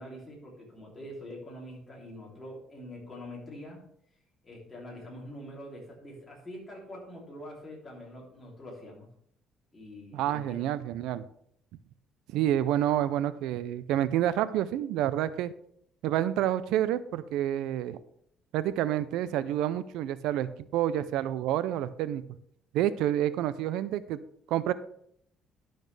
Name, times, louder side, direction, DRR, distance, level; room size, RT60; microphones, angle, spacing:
voice 1, 0.0-3.8 4.4-9.1 9.7-10.6, left 1 dB, 20° left, -3 dB, 3.2 m, -44 dB
voice 2, 10.1-11.2 12.3-15.5 16.0-18.0 18.5-22.2 22.7-24.2 24.5-24.7, right 12 dB, 85° right, 15 dB, 0.4 m, -28 dB
12.0 x 6.4 x 3.4 m, 0.69 s
cardioid pair, 140°, 0 cm